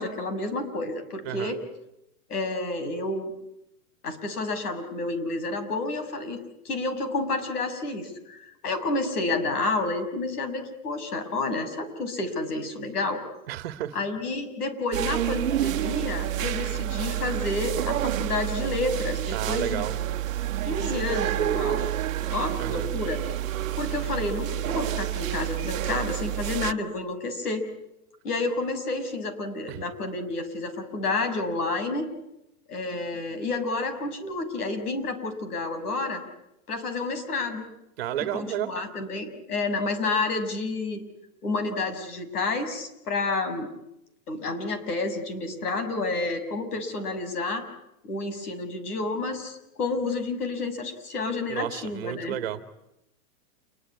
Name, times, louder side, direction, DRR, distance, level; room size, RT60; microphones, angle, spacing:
voice 1, 0.0-1.6 2.3-3.3 4.0-13.2 13.9-19.8 20.6-21.9 22.3-23.2 23.8-27.6 28.2-32.1 32.7-36.2 36.7-37.7 38.3-41.0 41.4-43.7 44.3-47.6 48.0-52.3, left 3 dB, 80° left, 9 dB, 6.7 m, -30 dB
voice 2, 1.2-1.6 13.5-14.0 19.3-20.0 22.6-22.9 29.7-29.8 38.0-38.7 51.5-52.6, right 12 dB, 40° right, 10 dB, 2.0 m, -32 dB
sound 1, 14.9-26.7, right 13 dB, 60° right, 1.2 m, -29 dB
28.5 x 21.5 x 9.7 m, 0.85 s
supercardioid pair, 180°, 45 cm